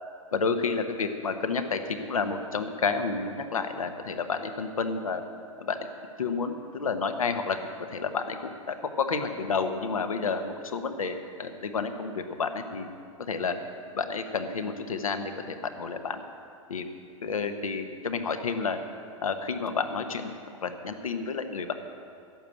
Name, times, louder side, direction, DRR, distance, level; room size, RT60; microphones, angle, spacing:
voice 1, 0.3-5.2 5.6-5.8 6.2-12.9 13.2-13.5 13.9-16.2 16.7-16.8 17.2-18.8 19.2-20.3 20.6-21.7, left 5 dB, 90° left, 7 dB, 1.1 m, -30 dB
11.5 x 7.2 x 9.7 m, 2.4 s
hypercardioid pair, 115°, 17 cm